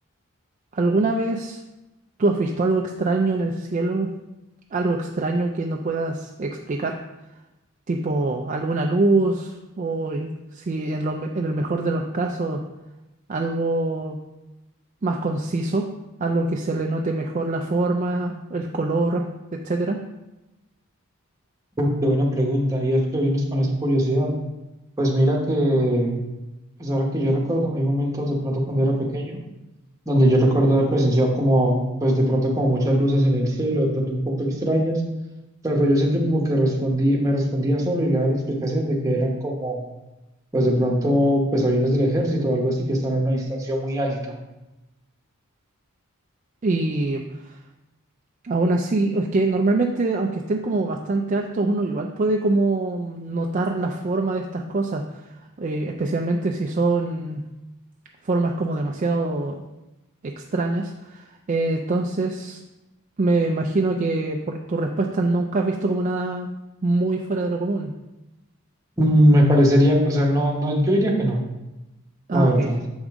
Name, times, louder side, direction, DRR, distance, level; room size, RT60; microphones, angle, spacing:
voice 1, 0.7-1.6 2.2-4.1 4.7-7.0 7.9-12.6 13.3-14.2 15.0-15.9 16.2-19.2 19.5-20.0 46.6-47.6 48.4-55.0 55.6-57.4 58.2-59.6 60.2-62.6 63.2-66.5 66.8-67.9 72.3-72.7, right 2 dB, 35° right, 2 dB, 0.4 m, -24 dB
voice 2, 21.8-24.3 25.0-26.2 26.8-29.4 30.1-35.0 35.6-39.8 40.5-44.3 69.0-71.4 72.3-72.8, equal, 15° right, -2 dB, 1.1 m, -21 dB
7.1 x 5.1 x 3.6 m, 1.0 s
head